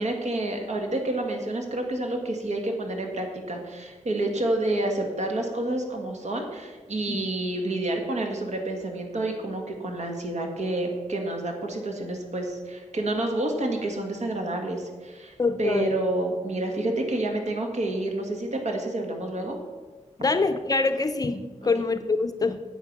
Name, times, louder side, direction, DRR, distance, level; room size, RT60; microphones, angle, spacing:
voice 1, 0.0-19.6, right 1 dB, 65° right, 3 dB, 1.8 m, -29 dB
voice 2, 15.4-15.9 20.2-22.6, left 3 dB, 30° left, 9 dB, 0.6 m, -25 dB
9.5 x 8.1 x 6.1 m, 1.4 s
wide cardioid pair, 150°, 13 cm